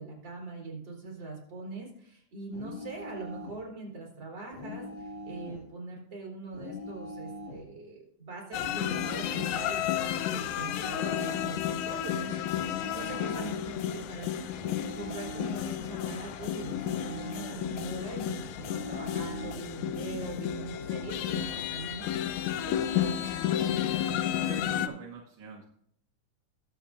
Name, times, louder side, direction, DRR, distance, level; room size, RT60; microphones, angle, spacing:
voice 1, 0.0-14.5 15.0-22.1 22.6-23.2, right 3 dB, 35° right, -2 dB, 3.9 m, -42 dB
sound 1, 2.5-3.6 4.5-5.7 6.5-7.7 8.5-9.6 10.5-11.7 12.6-13.7 14.6-15.7 16.6-17.7 18.6-19.7, left 2 dB, 25° left, 1.6 m, -41 dB
sound 2, 8.5-24.9, left 10 dB, 80° left, 1.9 m, -32 dB
voice 2, 24.1-25.7, right 4 dB, 65° right, 1 dB, 1.7 m, -44 dB
21.0 x 7.2 x 2.5 m, 0.70 s
omnidirectional pair, 3.6 m